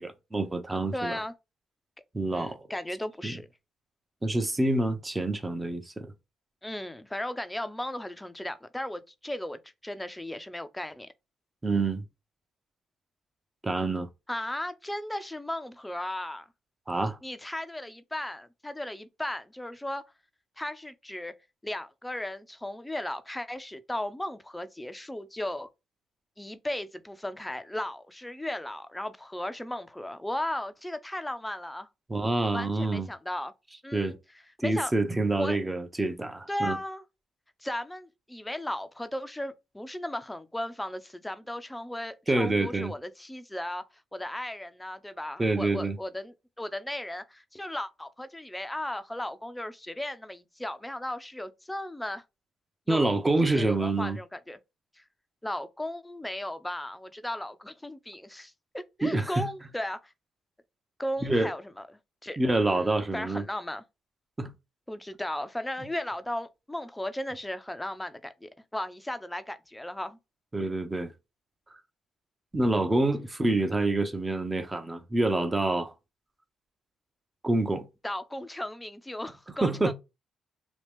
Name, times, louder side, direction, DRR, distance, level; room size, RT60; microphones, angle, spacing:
voice 1, 0.0-1.2 2.1-2.6 3.2-3.4 4.2-6.1 11.6-12.0 13.6-14.1 16.9-17.2 32.1-33.1 33.9-34.2 34.6-36.8 42.3-42.9 45.4-46.0 52.9-54.2 59.0-59.5 61.2-61.5 62.4-63.5 64.4-64.5 70.5-71.1 72.5-75.9 77.4-77.9 79.6-79.9, right 2 dB, 20° right, 0.8 m, -27 dB
voice 2, 0.9-1.3 2.3-3.5 6.6-11.1 14.3-16.5 17.2-20.0 20.6-21.3 21.6-25.7 26.4-31.9 32.5-33.5 33.8-34.2 34.6-34.9 35.4-35.6 36.5-37.0 37.6-43.8 44.1-52.2 52.9-53.1 53.4-54.6 55.0-55.1 55.4-60.1 61.0-61.9 62.2-62.4 62.7-63.8 64.9-70.2 78.0-79.9, left 1 dB, 10° left, 0.6 m, -36 dB
2.9 x 2.4 x 3.4 m
supercardioid pair, 60°, 0 cm